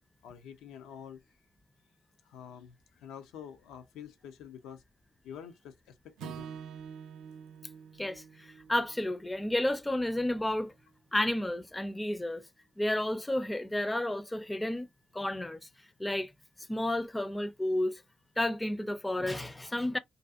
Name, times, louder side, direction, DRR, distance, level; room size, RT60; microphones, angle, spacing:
voice 1, 0.2-1.2 2.2-4.8 5.2-6.6, left 8 dB, 90° left, 0.4 m, -47 dB
Acoustic guitar / Strum, 6.2-10.5, right 7 dB, 85° right, 0.3 m, -47 dB
voice 2, 8.0-10.7 11.1-12.4 12.8-14.9 15.1-15.6 16.0-16.3 16.7-18.0 18.4-20.0, left 1 dB, 10° left, 0.4 m, -31 dB
2.5 x 2.3 x 2.4 m
cardioid pair, 90°, 0 cm